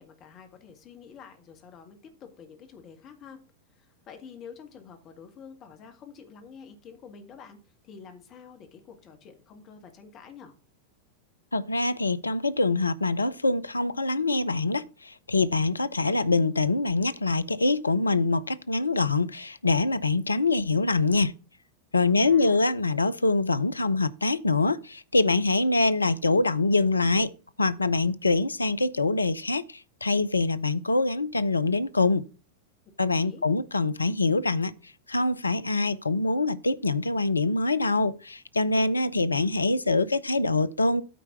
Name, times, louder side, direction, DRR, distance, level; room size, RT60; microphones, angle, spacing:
voice 1, 0.0-3.4 3.7-10.6 22.0-22.6 33.1-33.5, left 6 dB, 35° left, 1.9 m, -48 dB
voice 2, 11.5-21.3 21.9-27.3 27.6-32.2 33.0-34.7 35.1-41.0, left 3 dB, 80° left, 0.5 m, -24 dB
9.2 x 4.5 x 5.9 m
figure-of-eight pair, 90°, 0 cm